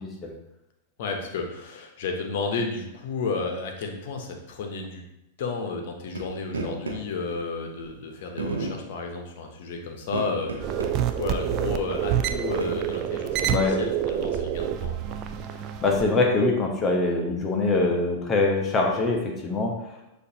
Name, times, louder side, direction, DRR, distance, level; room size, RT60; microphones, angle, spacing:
voice 1, 1.0-5.0 5.4-13.5 13.8-15.0, left 4 dB, 60° left, 3 dB, 0.8 m, -32 dB
sound 1, 6.2-6.3 6.5-7.0 7.8-7.9 8.4-8.8 10.0-10.9 11.3-11.4 12.0-13.0, right 3 dB, 90° right, 0.7 m, -33 dB
sound 2, 10.6-16.0, right 9 dB, 40° right, 0.4 m, -27 dB
voice 2, 13.5-13.8 15.8-19.7, left 3 dB, 25° left, 1 dB, 0.8 m, -23 dB
6.4 x 2.6 x 2.7 m, 0.87 s
hypercardioid pair, 105°, 0 cm